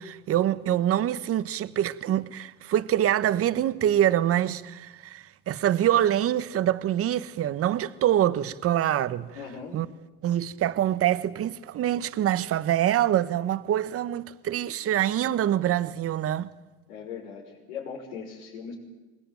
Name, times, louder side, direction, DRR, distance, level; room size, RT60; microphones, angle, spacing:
voice 1, 0.0-9.3 9.7-9.9 10.2-16.5, right 11 dB, 45° right, 1.3 m, -25 dB
voice 2, 9.3-9.8 16.9-18.7, left 6 dB, 85° left, 6.1 m, -39 dB
25.0 x 20.5 x 9.3 m
supercardioid pair, 95°, 33 cm